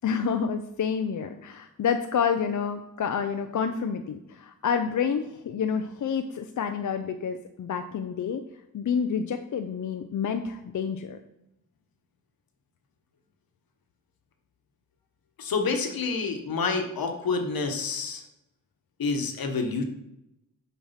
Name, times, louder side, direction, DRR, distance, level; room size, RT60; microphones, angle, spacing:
voice 1, 0.0-8.4 8.7-11.2, left 6 dB, 55° left, 6 dB, 0.5 m, -28 dB
voice 2, 15.4-18.2 19.0-19.8, left 4 dB, 75° left, 4 dB, 1.2 m, -28 dB
7.2 x 4.7 x 5.7 m, 0.88 s
wide cardioid pair, 150°, 36 cm